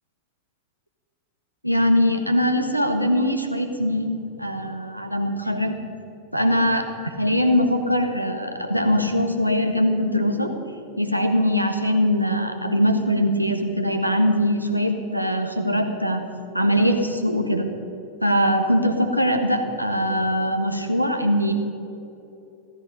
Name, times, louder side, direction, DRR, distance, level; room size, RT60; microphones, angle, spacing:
voice 1, 1.6-5.8 6.3-10.5 11.0-16.2 16.5-17.7 18.2-21.5, equal, 90° right, 5 dB, 1.3 m, -22 dB
16.0 x 13.5 x 5.3 m, 3.0 s
figure-of-eight pair, 90°, 0 cm